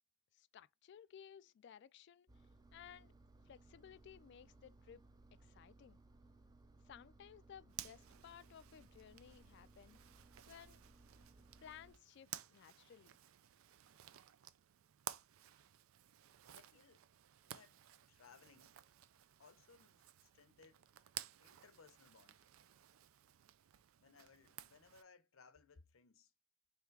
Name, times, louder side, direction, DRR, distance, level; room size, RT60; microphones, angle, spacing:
voice 1, 0.3-2.3 2.7-3.1 3.5-5.1 5.4-6.0 6.9-10.0 10.5-10.8 11.6-13.2, left 8 dB, 60° left, 0.3 m, -58 dB
Engine, 2.3-11.9, right 2 dB, 20° right, 0.5 m, -64 dB
Zipper (clothing), 7.7-25.0, right 12 dB, 85° right, 0.4 m, -55 dB
voice 2, 16.5-17.1 17.5-17.8 18.1-18.8 19.4-20.9 21.4-22.4 24.0-26.3, left 5 dB, 80° left, 0.7 m, -65 dB
3.6 x 3.2 x 4.5 m
head